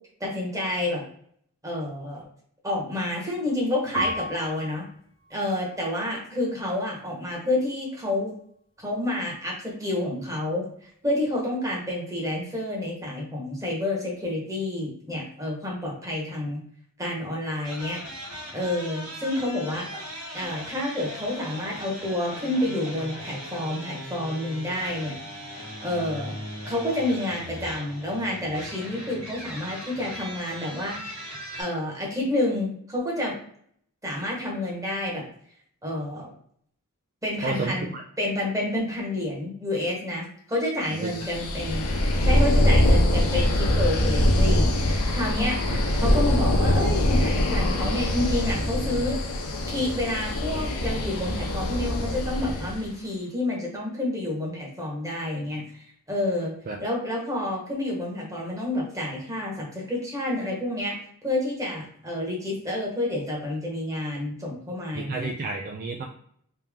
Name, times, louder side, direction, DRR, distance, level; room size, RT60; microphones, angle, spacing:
voice 1, 0.2-1.0 1.6-2.2 2.6-4.8 5.3-8.3 8.8-16.6 17.0-18.0 18.5-19.9 20.3-25.2 25.8-26.3 26.6-31.1 31.6-33.3 34.0-35.2 35.8-36.3 37.2-37.9 38.2-45.6 46.0-49.2 49.7-56.5 56.8-60.9 61.2-65.3, left 1 dB, 15° right, -3 dB, 1.3 m, -29 dB
Piano, 3.9-6.7 7.3-8.0, equal, 20° left, 0.9 m, -36 dB
sound 1, 17.6-31.6, equal, 70° right, 1.5 m, -39 dB
voice 2, 37.4-38.0 40.9-41.7 45.7-45.8 56.7-56.8 64.9-66.0, right 3 dB, 40° right, 2 dB, 0.4 m, -32 dB
sound 2, 41.1-52.9, left 1 dB, 70° left, 0.7 m, -23 dB
3.4 x 2.8 x 3.5 m, 0.64 s
head